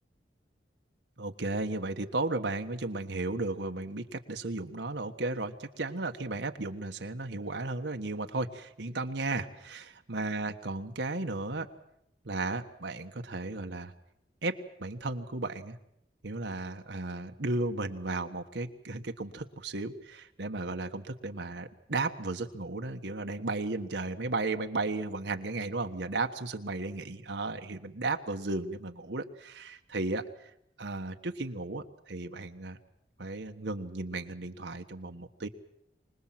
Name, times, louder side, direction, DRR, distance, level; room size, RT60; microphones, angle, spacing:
voice 1, 1.2-11.7 12.2-13.9 14.4-15.8 16.2-30.5 30.8-32.8 33.2-35.5, right 2 dB, 85° right, 5 dB, 1.4 m, -34 dB
25.5 x 20.0 x 7.6 m, 0.78 s
head